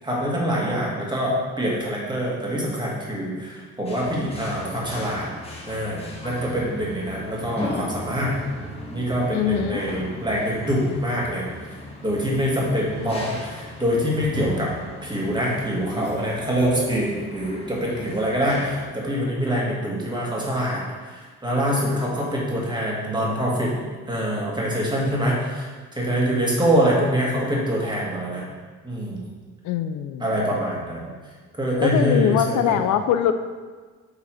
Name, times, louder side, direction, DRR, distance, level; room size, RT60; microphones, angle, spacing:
voice 1, 0.0-5.3 5.7-8.3 8.9-11.5 12.0-14.7 15.0-20.8 21.1-23.8 24.1-28.4 28.8-29.2 30.2-31.1 31.6-32.8, equal, 15° right, -4 dB, 2.1 m, -24 dB
sound 1, 3.9-18.9, left 1 dB, 20° left, 1.4 m, -37 dB
voice 2, 9.3-9.8 29.6-30.3 31.8-33.3, left 10 dB, 80° left, 9 dB, 0.5 m, -22 dB
7.0 x 3.9 x 4.8 m, 1.5 s
cardioid pair, 90°, 30 cm